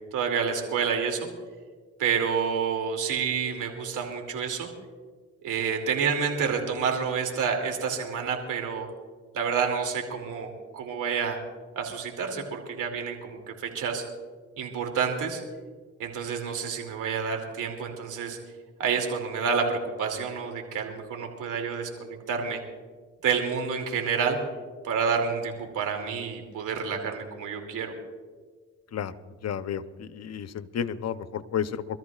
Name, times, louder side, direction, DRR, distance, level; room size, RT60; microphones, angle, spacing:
voice 1, 0.1-1.3 2.0-4.7 5.4-8.9 9.3-11.4 11.8-14.0 14.6-15.4 16.0-18.4 18.8-22.6 23.2-24.4 24.8-27.9, right 6 dB, 85° right, 3 dB, 2.7 m, -29 dB
voice 2, 29.4-31.9, left 8 dB, 60° left, 12 dB, 0.8 m, -32 dB
26.0 x 13.5 x 2.4 m, 1.5 s
cardioid pair, 65°, 30 cm